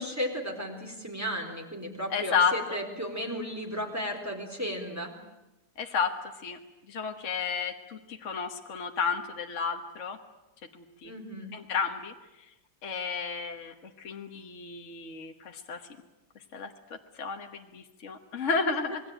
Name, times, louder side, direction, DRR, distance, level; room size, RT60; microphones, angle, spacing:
voice 1, 0.0-5.1 11.0-11.5, equal, 10° right, 2 dB, 4.1 m, -34 dB
voice 2, 2.1-2.8 5.8-6.2 6.4-6.6 6.9-10.2 10.7-11.1 11.5-12.1 12.8-15.8 16.5-19.0, left 5 dB, 50° left, 4 dB, 1.6 m, -32 dB
26.5 x 21.0 x 9.0 m, 0.99 s
omnidirectional pair, 1.8 m